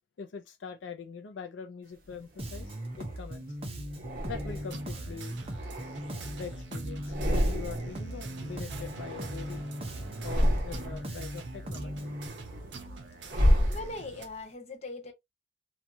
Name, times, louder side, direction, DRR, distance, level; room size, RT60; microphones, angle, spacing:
voice 1, 0.2-3.5 4.3-5.4 6.4-7.1 7.4-9.7 10.2-12.1, left 6 dB, 80° left, 0.4 m, -43 dB
sound 1, 2.1-3.3 3.9-4.9 5.4-6.6 6.9-8.1 8.3-9.7 10.1-11.1 11.6-14.3, equal, 50° right, 1.0 m, -31 dB
Bass guitar, 2.4-12.3, equal, 30° right, 0.6 m, -39 dB
sound 2, 4.5-14.3, right 3 dB, 75° right, 0.7 m, -45 dB
voice 2, 13.7-15.1, left 2 dB, 35° left, 0.8 m, -40 dB
3.0 x 2.3 x 2.6 m
head